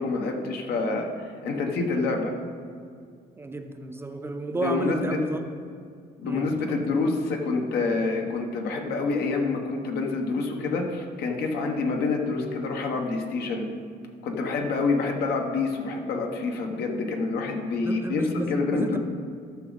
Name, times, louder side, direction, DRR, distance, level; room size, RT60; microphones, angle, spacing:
voice 1, 0.0-2.3 4.6-5.2 6.2-13.6 14.2-19.0, left 3 dB, 80° left, 2 dB, 1.3 m, -27 dB
voice 2, 3.4-5.6 6.2-6.8 17.8-19.0, right 2 dB, 15° right, 6 dB, 0.5 m, -32 dB
13.0 x 6.1 x 4.1 m, 2.2 s
cardioid pair, 140°, 16 cm